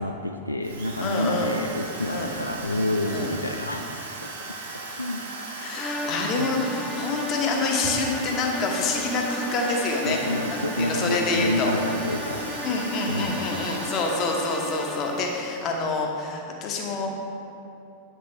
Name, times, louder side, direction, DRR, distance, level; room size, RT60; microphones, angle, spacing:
voice 1, 0.0-4.3 5.0-5.2 6.4-6.5 10.1-12.6 13.1-13.9, left 1 dB, 85° left, 4 dB, 0.3 m, -29 dB
Drill, 0.6-15.8, right 3 dB, 60° right, 1.1 m, -38 dB
voice 2, 1.0-1.5 2.1-2.3 3.1-3.3 5.6-10.2 10.5-11.7 12.6-17.2, left 3 dB, 35° left, 1 dB, 1.1 m, -27 dB
sound 1, 5.7-15.4, left 1 dB, 10° left, 0.5 m, -36 dB
8.5 x 6.1 x 3.4 m, 2.7 s
figure-of-eight pair, 90°, 0 cm